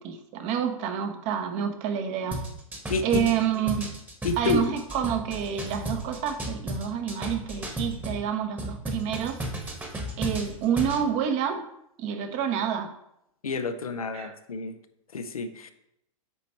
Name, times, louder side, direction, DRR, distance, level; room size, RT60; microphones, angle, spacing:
voice 1, 0.0-2.4 3.0-3.9 4.4-9.8 10.2-11.7 12.0-12.9 14.1-14.3, right 8 dB, 40° right, 7 dB, 0.8 m, -28 dB
sound 1, 2.3-8.2 8.6-11.0, right 1 dB, 10° right, 1.2 m, -34 dB
voice 2, 2.9-3.2 4.2-4.7 13.4-14.8 15.1-15.7, left 4 dB, 90° left, 9 dB, 0.6 m, -29 dB
8.9 x 3.1 x 4.3 m, 0.78 s
hypercardioid pair, 105°, 18 cm